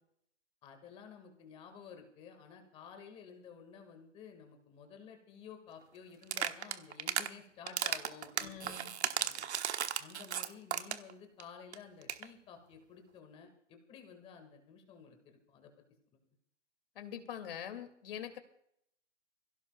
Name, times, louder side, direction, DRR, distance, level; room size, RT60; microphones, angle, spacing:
voice 1, 0.6-8.8 9.1-9.4 10.0-15.7, left 6 dB, 15° left, 5 dB, 1.9 m, -53 dB
sound 1, 6.2-7.3 7.7-11.1 11.4-11.5 11.7-11.8 12.0-12.2, right 9 dB, 65° right, 1.3 m, -35 dB
voice 2, 8.4-8.9 16.9-18.4, left 9 dB, 50° left, 7 dB, 2.5 m, -44 dB
24.5 x 16.5 x 2.4 m, 0.71 s
hypercardioid pair, 155°, 36 cm